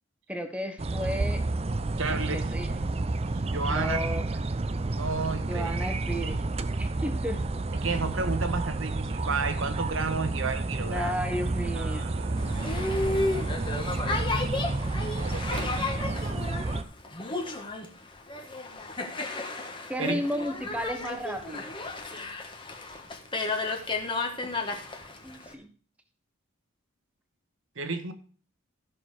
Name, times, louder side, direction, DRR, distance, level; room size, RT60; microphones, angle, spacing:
voice 1, 0.3-1.5 2.0-2.7 3.7-4.3 5.5-6.4 6.8-7.5 10.8-12.1 19.9-21.7 25.2-25.7, equal, 5° right, 7 dB, 1.2 m, -33 dB
sound 1, 0.8-16.8, right 2 dB, 30° right, 0.5 m, -30 dB
voice 2, 2.0-2.5 3.2-4.0 5.0-5.7 7.8-11.1 11.7-13.6 15.1-16.1 20.0-20.2 27.8-28.1, right 4 dB, 70° right, 8 dB, 1.3 m, -33 dB
Boat Water vehicle, 12.4-25.5, left 2 dB, 25° left, 1.3 m, -33 dB
14.0 x 6.2 x 4.8 m, 0.41 s
head